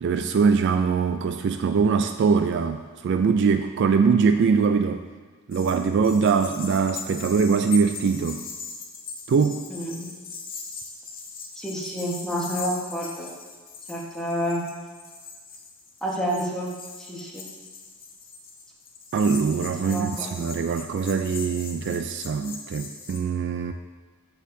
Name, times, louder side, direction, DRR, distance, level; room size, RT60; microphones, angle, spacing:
voice 1, 0.0-5.0 5.5-8.5 9.3-9.7 19.1-23.7, right 5 dB, 55° right, 7 dB, 0.3 m, -22 dB
sound 1, 5.5-23.2, left 4 dB, 45° left, 0.8 m, -40 dB
voice 2, 9.7-10.1 11.6-13.3 13.9-14.6 16.0-16.7 17.0-17.4 19.8-20.3, equal, 5° left, -5 dB, 1.2 m, -29 dB
13.0 x 4.4 x 2.7 m, 1.4 s
head